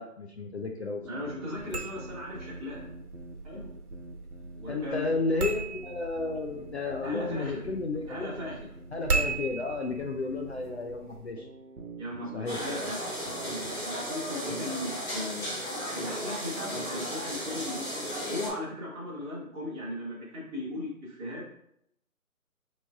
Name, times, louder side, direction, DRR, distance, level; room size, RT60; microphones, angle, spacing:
voice 1, 0.0-1.3 4.7-8.3 8.9-11.5 12.3-12.6, left 3 dB, 50° left, 2 dB, 0.5 m, -32 dB
sound 1, 1.0-13.8, right 2 dB, 60° right, 1.0 m, -46 dB
voice 2, 1.1-2.8 3.4-3.7 4.5-5.1 7.0-7.5 8.1-8.6 12.0-13.0 13.8-21.4, left 1 dB, 15° right, -8 dB, 1.5 m, -37 dB
sound 2, 1.5-11.3, right 3 dB, 80° right, 1.1 m, -37 dB
sound 3, 12.5-18.5, equal, 15° left, 1.0 m, -35 dB
6.7 x 3.2 x 2.3 m, 0.73 s
figure-of-eight pair, 155°, 45 cm